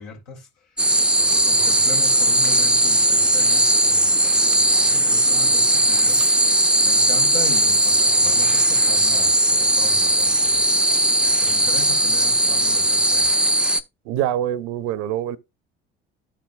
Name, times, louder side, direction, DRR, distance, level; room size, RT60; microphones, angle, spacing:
voice 1, 0.0-10.7 11.2-13.3, left 4 dB, 75° left, 2.4 m, -38 dB
sound 1, 0.8-13.8, right 1 dB, 5° right, 0.5 m, -18 dB
voice 2, 14.1-15.4, right 11 dB, 65° right, 0.7 m, -24 dB
13.0 x 4.6 x 2.3 m
hypercardioid pair, 60°, 31 cm